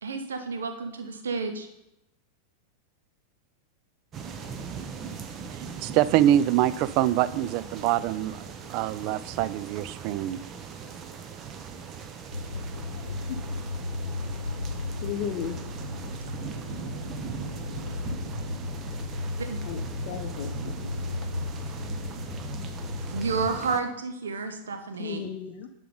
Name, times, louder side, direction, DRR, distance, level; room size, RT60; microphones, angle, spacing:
voice 1, 0.0-1.7 19.5-19.6 23.1-25.2, right 4 dB, 65° right, 7 dB, 0.9 m, -31 dB
sound 1, 4.1-23.8, right 6 dB, 30° right, 0.7 m, -40 dB
voice 2, 5.5-8.4 8.7-10.4, right 12 dB, 45° right, 17 dB, 0.3 m, -25 dB
sound 2, 12.3-23.5, left 3 dB, 85° left, 0.3 m, -35 dB
voice 3, 12.7-13.5 15.0-15.6 19.6-21.3 24.9-25.7, left 8 dB, 45° left, 4 dB, 0.6 m, -36 dB
10.0 x 4.9 x 3.9 m, 0.88 s
figure-of-eight pair, 90°, 0 cm